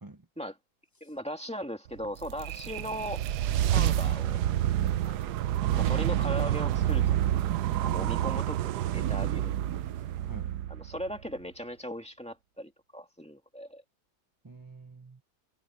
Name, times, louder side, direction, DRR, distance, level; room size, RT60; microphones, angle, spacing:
voice 1, 1.0-3.2 3.7-4.5 5.0-5.2 5.8-9.5 10.7-13.8, equal, 5° left, 2.2 m, -38 dB
sound 1, 2.0-11.3, right 12 dB, 85° right, 1.2 m, -28 dB
voice 2, 10.0-10.6 14.4-15.2, right 2 dB, 15° right, 0.8 m, -47 dB
omnidirectional pair, 1.7 m